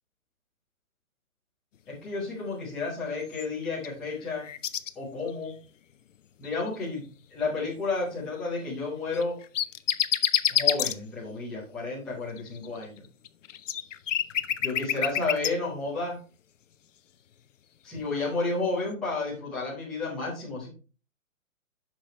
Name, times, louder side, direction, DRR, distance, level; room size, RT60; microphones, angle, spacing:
voice 1, 2.0-4.5 4.9-5.5 6.4-9.4 10.5-13.0 14.6-16.1 17.8-20.7, left 3 dB, ahead, -8 dB, 0.6 m, -31 dB
sound 1, 3.3-3.9 4.2-4.9 5.3-5.5 6.4-6.8 9.1-10.9 12.4-15.5, left 10 dB, 65° left, 0.6 m, -28 dB
8.5 x 5.9 x 3.0 m, 0.35 s
hypercardioid pair, 165°, 42 cm